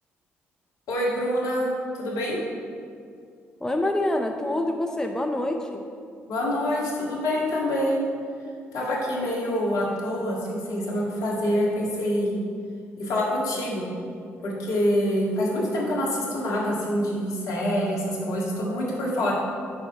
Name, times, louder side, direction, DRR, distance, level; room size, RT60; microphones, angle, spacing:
voice 1, 0.9-1.7 2.0-2.4 6.3-8.0 8.7-12.4 13.0-13.9 14.4-19.3, equal, 65° left, -4 dB, 1.7 m, -26 dB
voice 2, 3.6-5.8, left 1 dB, 10° left, 4 dB, 0.6 m, -26 dB
6.4 x 4.6 x 5.4 m, 2.3 s
hypercardioid pair, 45°, 6 cm